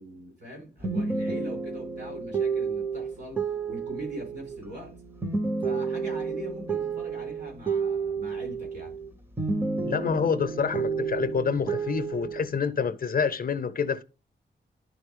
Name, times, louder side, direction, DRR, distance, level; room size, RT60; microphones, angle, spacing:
voice 1, 0.0-5.0 5.6-8.9, right 1 dB, 60° right, 4.6 m, -42 dB
sound 1, 0.8-9.1 9.4-12.5, right 4 dB, 10° right, 0.6 m, -31 dB
voice 2, 9.8-14.0, left 6 dB, 50° left, 0.5 m, -27 dB
11.0 x 3.9 x 3.6 m
wide cardioid pair, 155°, 19 cm